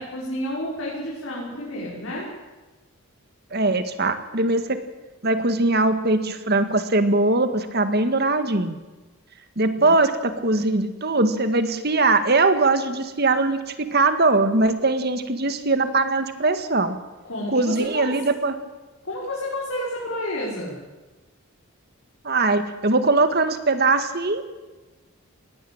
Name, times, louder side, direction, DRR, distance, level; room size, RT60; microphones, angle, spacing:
voice 1, 0.0-2.3 9.7-9.9 17.3-18.1 19.0-20.7, left 1 dB, 65° left, -5 dB, 5.9 m, -30 dB
voice 2, 3.5-4.8 5.2-8.8 9.6-17.0 17.5-18.6 22.2-24.6, right 2 dB, 45° right, 10 dB, 1.8 m, -21 dB
20.5 x 17.0 x 8.9 m, 1.2 s
head